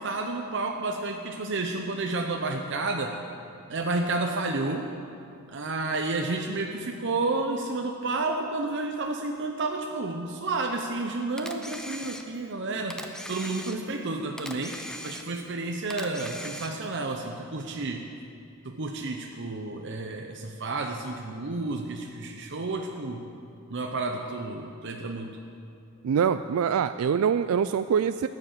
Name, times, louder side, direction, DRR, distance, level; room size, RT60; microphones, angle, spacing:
voice 1, 0.0-3.2 3.7-4.9 5.5-14.8 15.0-18.0 18.6-23.2 23.7-25.3, right 3 dB, 55° right, 3 dB, 0.8 m, -31 dB
Camera, 11.4-12.5 12.9-14.0 14.4-15.5 15.9-16.9, equal, 5° left, 0.7 m, -40 dB
voice 2, 26.0-28.3, right 7 dB, 85° right, 11 dB, 0.3 m, -24 dB
14.5 x 9.6 x 7.5 m, 2.5 s
head